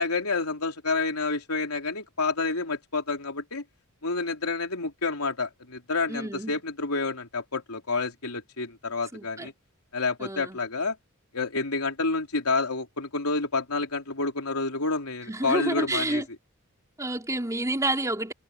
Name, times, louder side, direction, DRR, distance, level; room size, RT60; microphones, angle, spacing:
voice 1, 0.0-3.6 4.0-9.5 9.9-11.0 11.3-16.2, left 3 dB, 90° left, 3.6 m, -29 dB
voice 2, 6.1-6.6 9.1-9.5 10.2-10.6 15.3-16.3 17.0-18.3, right 2 dB, 15° right, 4.9 m, -29 dB
head